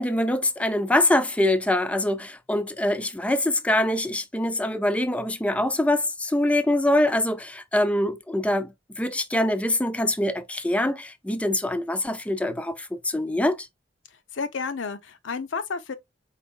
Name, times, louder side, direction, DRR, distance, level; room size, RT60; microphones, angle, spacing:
voice 1, 0.0-13.7, left 1 dB, 5° left, 0.4 m, -24 dB
voice 2, 14.3-15.9, left 5 dB, 90° left, 0.6 m, -31 dB
4.5 x 4.1 x 2.3 m
head